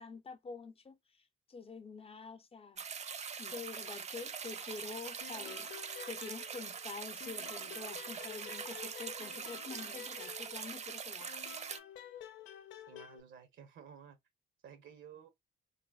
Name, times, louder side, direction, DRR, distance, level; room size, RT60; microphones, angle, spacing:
voice 1, 0.0-3.0 3.4-5.7 6.0-11.3, left 4 dB, 30° left, 0.6 m, -47 dB
sound 1, 2.8-11.8, right 6 dB, 35° right, 0.5 m, -43 dB
sound 2, 5.2-6.9 7.2-10.8 11.2-13.2, left 10 dB, 75° left, 0.5 m, -51 dB
voice 2, 12.7-14.2 14.6-15.3, right 8 dB, 75° right, 1.0 m, -54 dB
3.8 x 2.1 x 2.3 m
cardioid pair, 90°, 20 cm